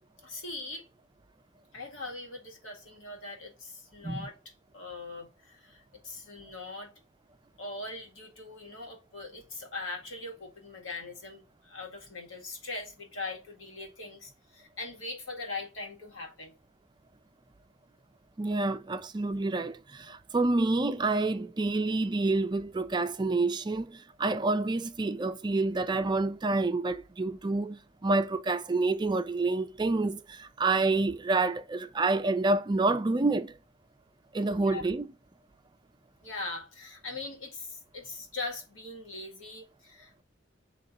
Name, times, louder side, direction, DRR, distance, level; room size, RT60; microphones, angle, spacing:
voice 1, 0.2-0.9 1.7-4.3 4.7-6.9 7.6-16.5 34.5-34.8 36.2-40.2, left 3 dB, 90° left, 1.8 m, -41 dB
voice 2, 18.4-33.6 34.3-35.1, right 3 dB, 20° right, 0.4 m, -28 dB
8.4 x 3.0 x 3.9 m
head